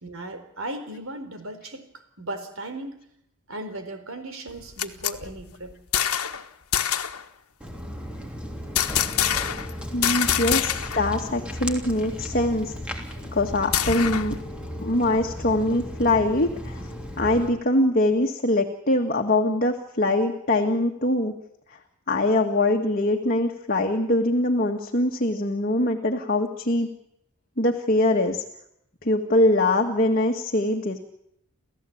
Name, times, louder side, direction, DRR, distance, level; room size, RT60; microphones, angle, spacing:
voice 1, 0.0-1.9 2.2-3.0 3.5-5.8, right 1 dB, 65° right, 8 dB, 4.2 m, -36 dB
sound 1, 4.5-6.4 6.7-7.2 8.7-9.7 10.0-11.1 11.4-11.5 11.8-14.4, left 10 dB, 85° left, 1.4 m, -26 dB
Walk footsteps, 7.6-17.5, equal, 5° right, 3.1 m, -35 dB
voice 2, 9.9-13.0 13.3-14.4 14.8-16.8 17.2-21.3 22.1-26.9 27.6-28.4 29.0-31.0, left 1 dB, 40° left, 2 dB, 1.9 m, -23 dB
29.0 x 15.0 x 8.7 m, 0.77 s
head